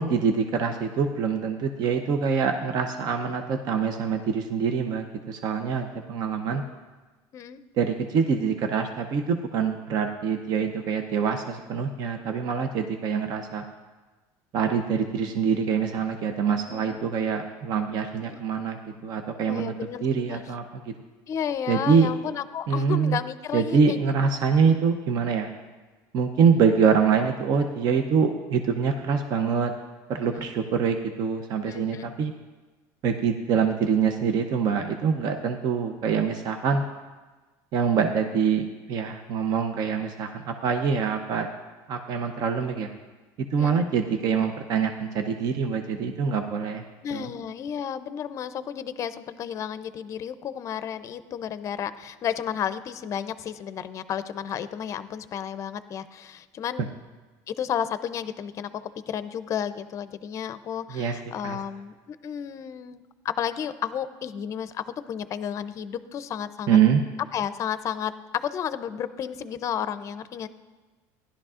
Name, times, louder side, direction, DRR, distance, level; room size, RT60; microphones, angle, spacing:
voice 1, 0.0-6.6 7.8-13.6 14.5-19.7 20.0-20.9 21.7-22.1 22.7-23.2 23.5-25.5 26.1-29.7 30.1-32.3 33.0-36.8 37.7-41.5 41.9-42.9 43.5-46.8 47.1-47.3 60.9-61.2 61.4-61.6 66.7-67.0, right 6 dB, 50° right, 5 dB, 0.7 m, -25 dB
voice 2, 16.7-17.0 18.2-18.4 19.4-20.4 21.3-24.0 24.7-24.8 30.2-30.6 31.7-32.1 43.6-43.8 47.0-56.9 57.5-66.8 67.3-70.5, left 8 dB, 40° left, 13 dB, 0.5 m, -32 dB
16.0 x 11.5 x 2.5 m, 1.3 s
cardioid pair, 130°, 9 cm